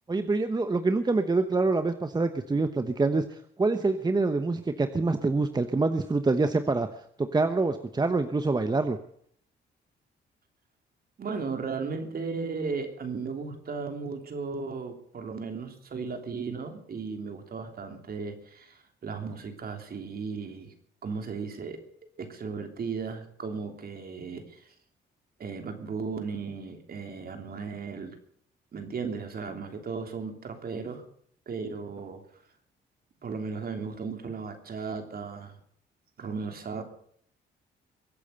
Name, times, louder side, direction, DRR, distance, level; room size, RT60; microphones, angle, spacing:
voice 1, 0.1-6.9 7.2-9.0, right 3 dB, 20° right, 9 dB, 1.1 m, -26 dB
voice 2, 11.2-20.7 21.0-21.8 22.2-24.7 25.4-28.2 28.7-31.0 31.5-32.2 33.2-35.6 36.2-36.8, right 5 dB, 50° right, 5 dB, 3.2 m, -36 dB
23.0 x 8.6 x 6.8 m, 0.64 s
cardioid pair, 90°, 20 cm